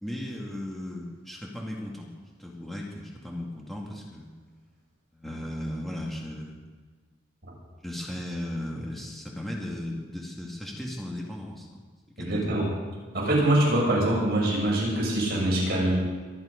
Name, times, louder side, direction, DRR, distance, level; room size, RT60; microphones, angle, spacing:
voice 1, 0.0-2.1 2.4-4.3 5.1-6.6 7.8-11.8 12.2-12.6, left 1 dB, ahead, -2 dB, 2.2 m, -36 dB
voice 2, 12.2-12.7 13.1-15.9, right 1 dB, 50° right, -4 dB, 6.3 m, -24 dB
23.5 x 11.0 x 5.3 m, 1.5 s
head